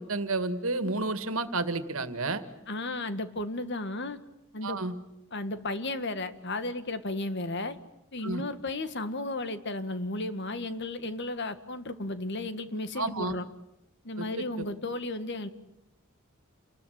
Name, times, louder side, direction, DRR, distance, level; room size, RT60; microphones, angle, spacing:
voice 1, 0.0-2.4 4.6-4.9 8.2-8.4 13.0-13.3 14.2-14.3 14.6-14.7, right 2 dB, 75° right, 11 dB, 2.1 m, -31 dB
voice 2, 2.7-4.2 4.5-4.8 5.3-7.8 8.1-13.4 14.0-15.5, left 2 dB, 55° left, 10 dB, 1.8 m, -34 dB
29.0 x 21.0 x 9.5 m, 0.85 s
head